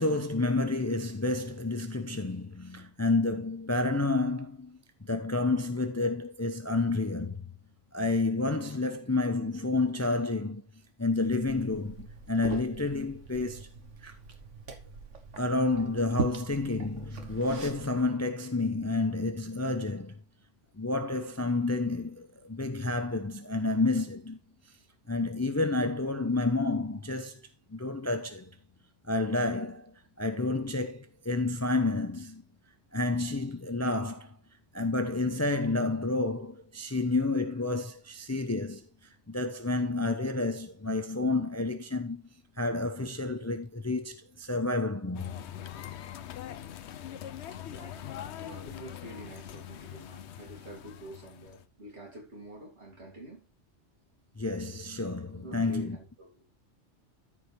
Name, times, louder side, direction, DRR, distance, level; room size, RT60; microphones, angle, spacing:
voice 1, 0.0-7.4 7.9-10.6 11.0-13.7 14.0-14.1 15.4-20.2 20.7-24.4 25.1-28.5 29.1-32.4 32.9-34.4 34.7-38.8 39.3-42.2 42.6-45.3 54.4-56.0, left 2 dB, 15° left, 0.6 m, -30 dB
Liquid, 11.2-18.0, right 4 dB, 85° right, 1.6 m, -40 dB
sound 1, 45.1-51.7, left 10 dB, 70° left, 0.9 m, -43 dB
voice 2, 47.5-53.5 55.3-56.4, right 1 dB, 65° right, 3.4 m, -48 dB
13.0 x 5.1 x 3.4 m
omnidirectional pair, 1.2 m